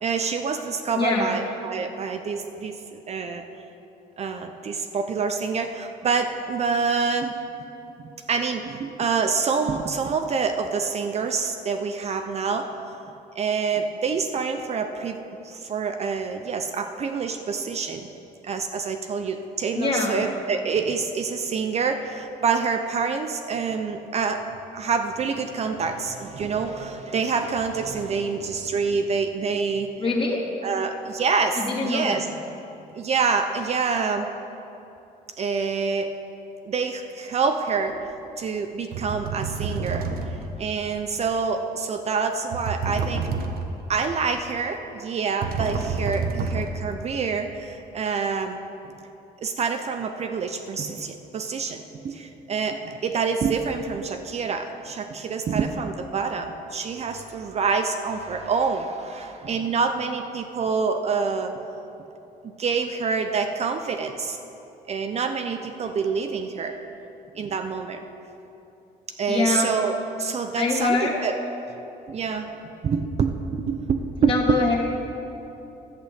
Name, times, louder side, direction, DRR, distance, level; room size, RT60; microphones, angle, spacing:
voice 1, 0.0-3.4 4.2-7.3 8.3-12.7 13.4-18.1 18.4-24.4 24.7-29.9 30.6-32.3 32.9-34.3 35.4-36.1 36.6-37.9 38.4-40.1 40.6-43.2 43.9-48.6 49.4-61.5 62.6-64.4 64.9-66.8 67.4-68.0 69.2-71.3 72.1-72.5 72.8-74.6, right 5 dB, 40° right, 6 dB, 0.6 m, -26 dB
voice 2, 0.9-1.3 19.7-20.2 30.0-30.4 31.6-32.2 69.3-69.7 70.6-71.2 74.2-74.8, left 3 dB, 30° left, -3 dB, 2.4 m, -24 dB
sound 1, 37.9-38.1 38.9-40.6 42.5-43.9 45.4-47.0, right 4 dB, 65° right, 1.1 m, -29 dB
11.0 x 6.1 x 8.3 m, 2.9 s
cardioid pair, 110°, 17 cm